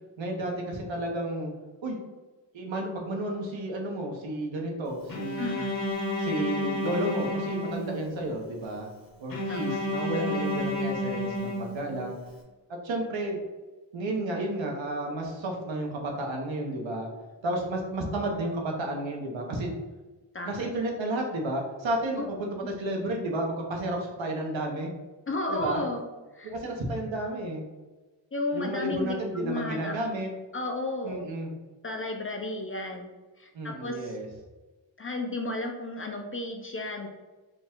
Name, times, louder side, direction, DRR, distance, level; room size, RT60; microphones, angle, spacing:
voice 1, 0.2-1.5 1.8-2.0 2.5-5.7 6.2-8.9 9.2-12.1 12.7-13.4 13.9-17.1 17.4-19.7 20.4-24.9 25.5-25.8 26.4-27.6 28.5-30.3 31.0-31.5 33.5-34.3, right 1 dB, 80° right, 1 dB, 1.1 m, -32 dB
Bowed string instrument, 5.1-8.3 9.3-12.2, left 1 dB, 50° left, 0.9 m, -31 dB
voice 2, 5.4-5.9 9.5-9.8 20.3-20.7 22.2-22.3 22.6-22.8 25.3-26.0 26.3-26.6 28.3-30.2 30.5-31.3 31.8-33.1 33.4-34.2 35.0-37.1, left 2 dB, 30° left, 2 dB, 0.4 m, -33 dB
5.1 x 2.3 x 3.6 m, 1.2 s
wide cardioid pair, 170°, 45 cm